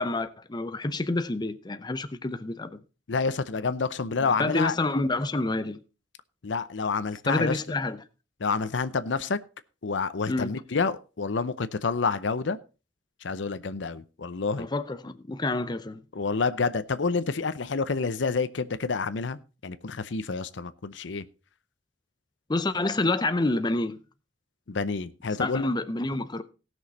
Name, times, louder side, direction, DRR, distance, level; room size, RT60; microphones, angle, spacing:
voice 1, 0.0-2.8 4.4-5.8 7.3-8.0 10.3-10.5 14.6-16.0 22.5-24.0 25.4-26.4, left 2 dB, 25° left, 0.6 m, -28 dB
voice 2, 3.1-4.7 6.4-7.6 8.4-9.4 9.8-12.6 13.2-14.7 16.1-21.2 24.7-25.7, left 4 dB, 75° left, 0.7 m, -28 dB
17.5 x 6.3 x 4.2 m
head